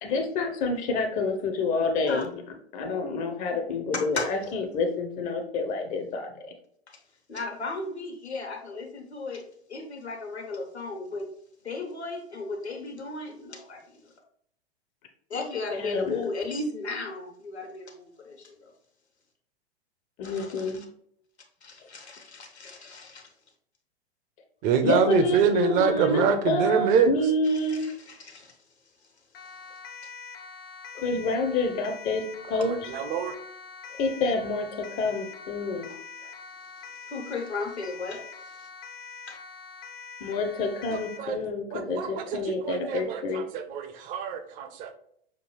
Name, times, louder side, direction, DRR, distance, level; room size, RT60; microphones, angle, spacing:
voice 1, 0.0-2.3 2.7-6.3 15.7-16.2 20.2-20.8 24.8-27.8 30.9-32.9 34.0-35.9 40.2-43.4, left 3 dB, 25° left, 5 dB, 0.6 m, -28 dB
voice 2, 7.3-11.3 11.6-14.1 15.3-18.7 20.2-20.8 21.6-23.3 27.7-28.6 37.1-38.7 39.3-39.4, left 3 dB, 85° left, 2 dB, 1.3 m, -35 dB
voice 3, 24.6-27.1 32.6-33.3 41.2-41.4 41.7-44.9, right 7 dB, 25° right, 9 dB, 0.6 m, -25 dB
Siren, 29.3-41.3, left 5 dB, 65° left, 0.7 m, -44 dB
6.5 x 2.3 x 3.1 m, 0.67 s
figure-of-eight pair, 100°, 32 cm